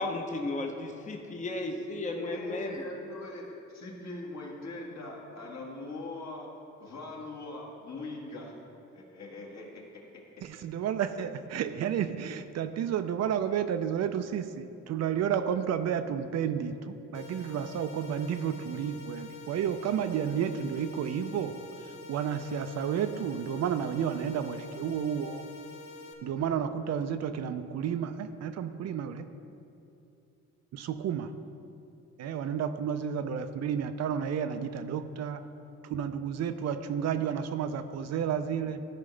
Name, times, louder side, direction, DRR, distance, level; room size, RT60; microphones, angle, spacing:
voice 1, 0.0-2.8, left 2 dB, 25° left, 3 dB, 0.7 m, -34 dB
voice 2, 2.2-8.6 8.9-10.0, left 2 dB, 60° left, -2 dB, 1.9 m, -41 dB
voice 3, 10.4-25.4 26.2-29.3 30.7-31.3 32.2-35.4 35.8-38.9, right 8 dB, 60° right, 10 dB, 0.5 m, -31 dB
sound 1, 17.1-26.1, left 3 dB, 85° left, 0.9 m, -47 dB
13.0 x 5.1 x 3.3 m, 2.7 s
cardioid pair, 90°, 30 cm